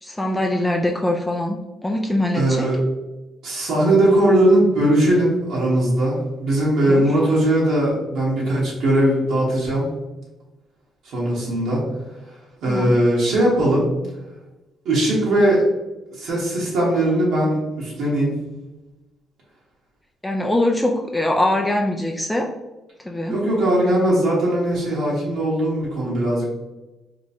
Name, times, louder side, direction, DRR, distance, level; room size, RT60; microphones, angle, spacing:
voice 1, 0.0-2.7 6.8-7.0 12.7-13.0 20.2-22.5 23.0-23.4, left 1 dB, 10° left, 1 dB, 0.3 m, -22 dB
voice 2, 2.3-2.8 3.4-9.9 11.0-11.8 12.6-13.9 14.8-15.6 16.1-18.3 23.3-26.5, right 1 dB, 80° right, -6 dB, 1.2 m, -19 dB
2.9 x 2.3 x 4.1 m, 1.1 s
cardioid pair, 90°, 0 cm